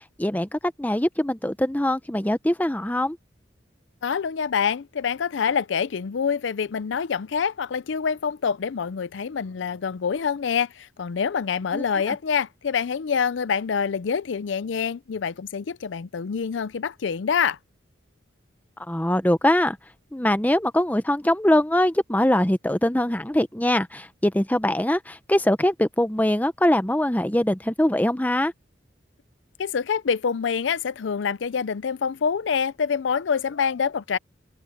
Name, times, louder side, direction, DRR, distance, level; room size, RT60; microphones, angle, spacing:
voice 1, 0.0-3.2 11.7-12.2 18.9-19.8 20.1-28.5, left 1 dB, 10° left, 0.8 m, -22 dB
voice 2, 4.0-17.6 29.6-34.2, left 6 dB, 75° left, 0.5 m, -26 dB
head